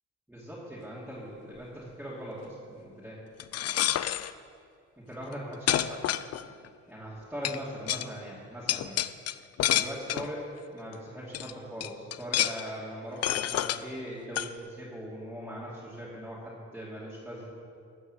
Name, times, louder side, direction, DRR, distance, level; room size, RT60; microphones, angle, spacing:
voice 1, 0.3-3.2 5.0-6.1 6.9-9.0 9.7-17.5, equal, 5° right, -9 dB, 2.7 m, -40 dB
sound 1, 3.4-4.3 5.2-5.3 5.7-6.7 7.4-7.6 7.9-8.1 8.7-10.3 10.9-11.0 11.3-11.5 11.8-12.7 13.2-13.8 14.4-14.5, left 12 dB, 55° left, 0.5 m, -28 dB
13.0 x 5.9 x 8.1 m, 2.3 s
cardioid pair, 90°, 30 cm